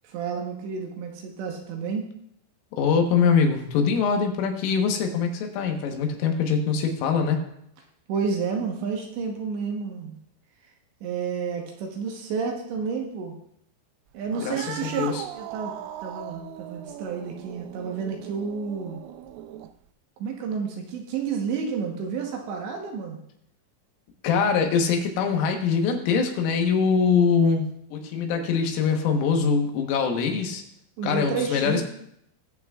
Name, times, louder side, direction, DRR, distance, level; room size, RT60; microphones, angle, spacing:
voice 1, 0.0-2.0 8.1-10.2 11.0-13.4 14.1-19.0 20.2-23.2 31.0-31.8, right 5 dB, 70° right, 1 dB, 3.1 m, -30 dB
voice 2, 2.7-7.4 14.4-15.3 24.2-30.6 31.0-31.8, left 6 dB, 80° left, 3 dB, 3.8 m, -23 dB
Cat, 14.3-19.9, right 12 dB, 90° right, 3.2 m, -39 dB
20.0 x 8.5 x 2.4 m, 0.73 s
omnidirectional pair, 5.8 m